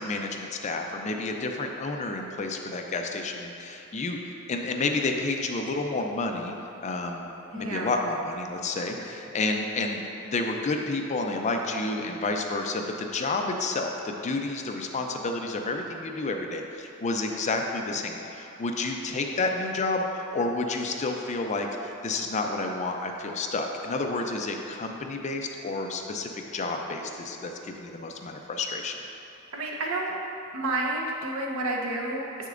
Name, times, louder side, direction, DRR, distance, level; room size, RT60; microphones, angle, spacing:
voice 1, 0.0-6.5 6.8-29.0, left 3 dB, 35° left, 3 dB, 0.4 m, -30 dB
voice 2, 7.5-7.9 9.0-9.1 29.5-30.1 30.5-32.5, right 2 dB, 70° right, -1 dB, 0.9 m, -30 dB
7.6 x 6.4 x 2.5 m, 2.8 s
head